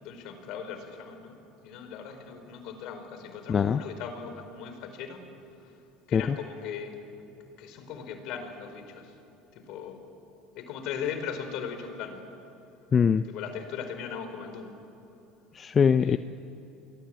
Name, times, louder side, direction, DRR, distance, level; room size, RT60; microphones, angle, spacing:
voice 1, 0.0-1.4 1.6-5.2 6.1-7.0 7.6-9.1 9.5-10.0 10.5-12.2 13.3-14.7 16.0-16.2, left 7 dB, 65° left, 7 dB, 4.5 m, -38 dB
voice 2, 3.5-3.8 6.1-6.4 12.9-13.3 15.5-16.2, left 6 dB, 30° left, 12 dB, 0.6 m, -22 dB
29.5 x 22.0 x 8.8 m, 2.9 s
supercardioid pair, 100°, 0 cm